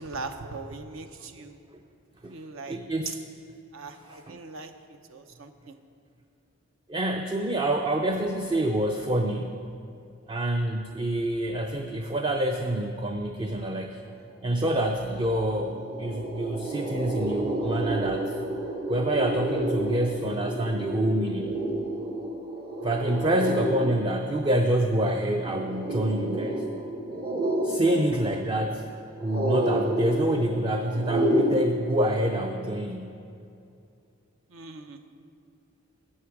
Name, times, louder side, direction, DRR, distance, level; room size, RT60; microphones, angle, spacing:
voice 1, 0.0-1.6 2.3-2.8 3.1-3.2 3.7-5.8 34.5-35.0, right 3 dB, 70° right, 7 dB, 0.7 m, -40 dB
voice 2, 2.7-3.2 4.1-4.4 6.9-9.6 10.3-14.0 14.4-18.4 18.9-21.6 22.8-26.6 27.6-28.9 29.2-33.2, right 1 dB, 25° right, 4 dB, 0.4 m, -27 dB
sound 1, 15.0-15.1 15.4-31.5, right 1 dB, 50° right, 1.3 m, -30 dB
13.0 x 7.9 x 4.8 m, 2.6 s
head